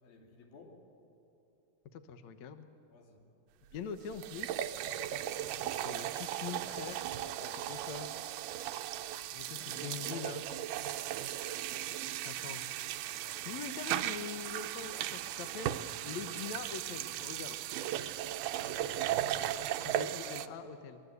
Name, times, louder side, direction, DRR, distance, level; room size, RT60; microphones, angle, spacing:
voice 1, 0.0-0.8 2.9-3.2 5.1-5.5 7.2-7.7 9.4-10.0 13.0-13.5 15.2-15.5 18.5-19.1, left 3 dB, 85° left, 0 dB, 4.8 m, -55 dB
voice 2, 1.9-2.7 3.7-4.6 5.6-7.1 7.7-8.1 9.3-10.4 12.3-12.6 13.5-15.7 16.0-17.6 19.8-21.0, left 6 dB, 65° left, 9 dB, 2.1 m, -43 dB
sound 1, 3.7-3.8 4.1-20.5, right 12 dB, 80° right, 2.2 m, -37 dB
25.0 x 22.0 x 8.1 m, 3.0 s
omnidirectional pair, 4.1 m